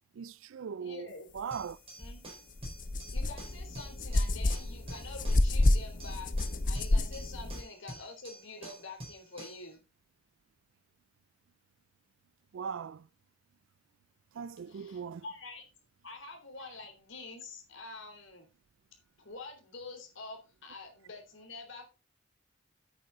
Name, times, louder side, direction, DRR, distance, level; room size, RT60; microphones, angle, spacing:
voice 1, 0.2-1.1 1.3-1.8 12.5-13.0 14.4-15.2, right 6 dB, 80° right, 0.4 m, -39 dB
voice 2, 0.8-1.3 2.0-2.3 3.1-6.3 6.6-9.8 14.7-15.7 16.0-18.5 19.2-21.9, left 3 dB, 75° left, 3.6 m, -47 dB
sound 1, 1.5-9.7, right 1 dB, 30° right, 4.6 m, -49 dB
sound 2, 2.0-2.1 2.6-7.6, left 2 dB, 45° left, 0.8 m, -29 dB
9.1 x 8.8 x 4.0 m
head